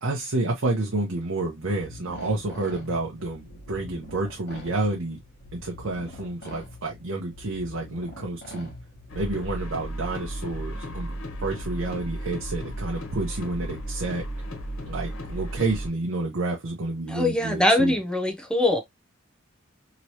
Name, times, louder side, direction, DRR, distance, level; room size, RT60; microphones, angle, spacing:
voice 1, 0.0-5.2 5.5-8.7 9.1-11.2 11.4-14.2 14.9-18.0, right 2 dB, 70° right, 0.8 m, -29 dB
sound 1, 1.6-9.3, left 1 dB, 50° left, 1.3 m, -44 dB
sound 2, 9.1-15.9, right 1 dB, 85° left, 1.2 m, -34 dB
voice 2, 17.1-18.8, left 1 dB, 5° left, 0.6 m, -22 dB
3.0 x 3.0 x 2.7 m
head